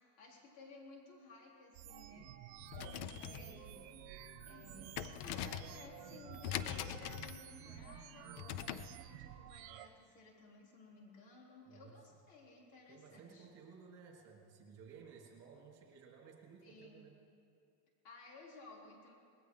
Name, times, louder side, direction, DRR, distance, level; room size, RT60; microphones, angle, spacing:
voice 1, 0.2-2.4 2.8-3.8 4.5-8.4 8.8-13.5 16.6-17.0 18.0-19.1, left 3 dB, 85° left, -2 dB, 4.0 m, -57 dB
sound 1, 1.7-9.9, right 12 dB, 75° right, 1.0 m, -52 dB
sound 2, 2.6-9.0, left 11 dB, 55° left, 0.7 m, -44 dB
voice 2, 11.7-12.0 12.9-17.2, right 6 dB, 35° right, -1 dB, 3.2 m, -57 dB
20.0 x 16.5 x 3.9 m, 2.5 s
supercardioid pair, 145°, 50 cm